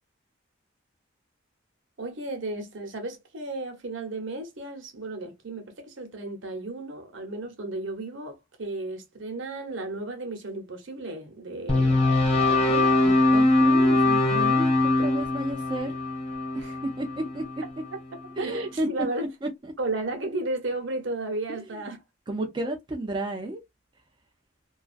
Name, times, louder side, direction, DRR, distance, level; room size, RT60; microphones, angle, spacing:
voice 1, 2.0-13.0 16.5-16.8 18.4-19.3 19.8-22.0, right 2 dB, 65° right, 0.8 m, -34 dB
sound 1, 11.7-17.9, left 2 dB, 30° left, 1.1 m, -22 dB
voice 2, 13.1-16.0 16.5-16.6 17.0-17.4 18.4-18.9 19.4-19.7 21.5-21.8 22.3-23.6, right 1 dB, 25° right, 0.4 m, -32 dB
2.3 x 2.3 x 2.4 m
head